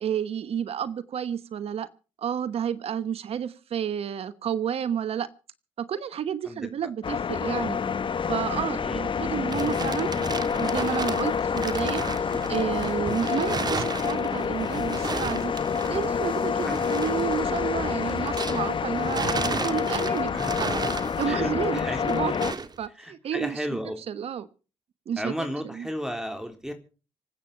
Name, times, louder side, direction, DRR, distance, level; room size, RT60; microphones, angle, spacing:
voice 1, 0.0-1.9 2.2-5.3 5.8-7.8 8.3-10.1 10.6-15.5 15.9-20.7 21.0-22.5 22.8-23.6 24.1-24.5 25.1-25.5 25.7-25.9, right 8 dB, 65° right, 1.1 m, -31 dB
sound 1, 7.0-22.5, left 6 dB, 50° left, 1.2 m, -28 dB
sound 2, 9.1-18.7 19.0-22.8, right 4 dB, 40° right, 1.6 m, -34 dB
voice 2, 21.3-22.4 22.9-24.0 25.2-26.7, equal, 5° right, 3.5 m, -34 dB
25.5 x 8.7 x 6.0 m
supercardioid pair, 50°, 11 cm